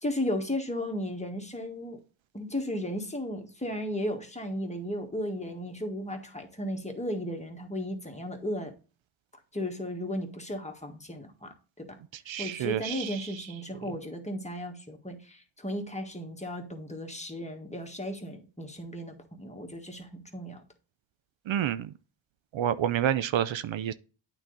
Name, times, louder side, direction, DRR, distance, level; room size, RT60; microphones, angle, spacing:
voice 1, 0.0-2.0 2.3-8.7 9.5-11.9 12.4-20.6, left 1 dB, 15° left, 1.6 m, -35 dB
voice 2, 12.3-13.2 21.5-21.9 22.5-23.9, right 10 dB, 70° right, 0.6 m, -28 dB
8.9 x 4.0 x 3.9 m
cardioid pair, 75°, 49 cm